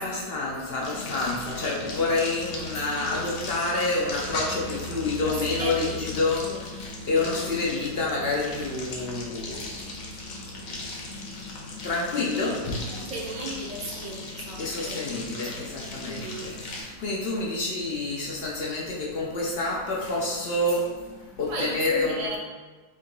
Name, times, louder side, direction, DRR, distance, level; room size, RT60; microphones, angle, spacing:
voice 1, 0.0-9.7 10.6-11.1 11.8-12.7 14.6-22.4, left 2 dB, 55° left, -3 dB, 0.8 m, -28 dB
sound 1, 0.8-16.8, left 2 dB, 70° left, 1.2 m, -37 dB
voice 2, 5.2-6.1 6.4-6.6 7.2-7.5 12.9-15.1 16.0-16.5 21.5-22.4, right 2 dB, 70° right, -1 dB, 1.2 m, -36 dB
3.7 x 2.8 x 3.8 m, 1.3 s
omnidirectional pair, 1.5 m